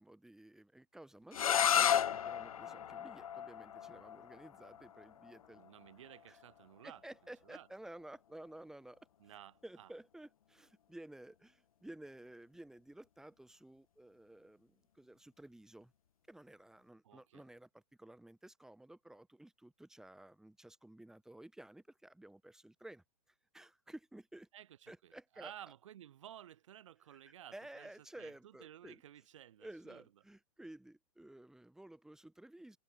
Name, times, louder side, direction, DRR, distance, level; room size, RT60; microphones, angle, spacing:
voice 1, 0.0-5.6 6.3-6.4 6.8-9.0 9.6-15.9 16.3-23.0 23.5-24.5 24.9-25.5 27.1-29.0 29.6-32.8, right 1 dB, ahead, 2.7 m, -54 dB
sound 1, 1.3-7.0, left 9 dB, 65° left, 0.4 m, -35 dB
voice 2, 5.5-7.7 9.2-9.9 17.0-17.4 24.5-27.9 28.2-30.0, right 11 dB, 55° right, 4.7 m, -55 dB
figure-of-eight pair, 110°, 19 cm